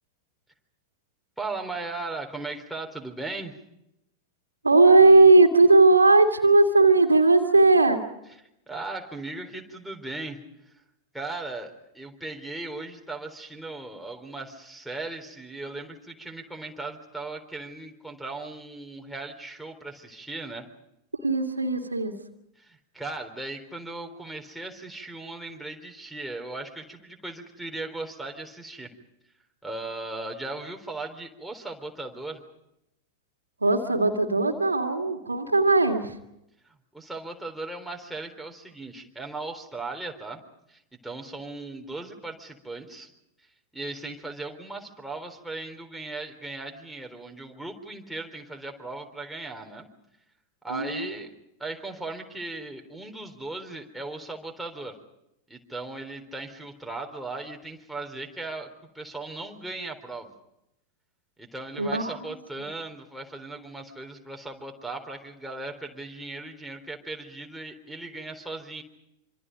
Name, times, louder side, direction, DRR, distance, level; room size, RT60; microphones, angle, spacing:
voice 1, 1.4-3.5 8.7-10.4 11.1-20.7 22.6-28.9 29.6-32.4 36.9-40.4 40.7-43.1 43.7-49.9 50.6-51.3 51.6-55.0 55.5-58.7 58.9-60.3 61.4-68.8, right 2 dB, ahead, 1 dB, 3.8 m, -37 dB
voice 2, 4.6-8.0 21.2-22.1 33.6-36.1 50.7-51.1 61.8-62.2, right 3 dB, 80° right, 5 dB, 2.3 m, -18 dB
26.5 x 26.5 x 5.3 m, 0.83 s
figure-of-eight pair, 90°, 0 cm